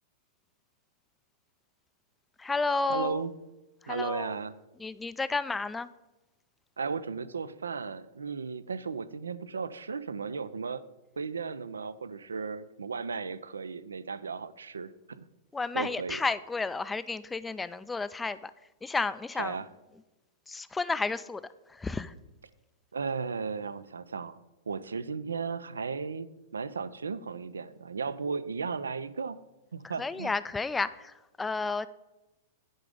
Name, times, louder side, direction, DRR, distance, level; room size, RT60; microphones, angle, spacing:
voice 1, 2.4-3.2 3.8-4.4 4.8-5.9 15.5-18.5 18.8-19.6 20.5-21.4 21.7-22.1 29.8-31.9, left 3 dB, 10° left, 15 dB, 0.3 m, -32 dB
voice 2, 2.9-3.3 3.9-4.5 6.8-10.8 11.2-15.3 15.7-16.2 19.4-19.7 22.9-24.4 24.7-26.3 26.5-29.4 29.7-30.3, right 5 dB, 85° right, 15 dB, 0.4 m, -35 dB
9.9 x 3.8 x 5.0 m, 1.0 s
hypercardioid pair, 110°, 0 cm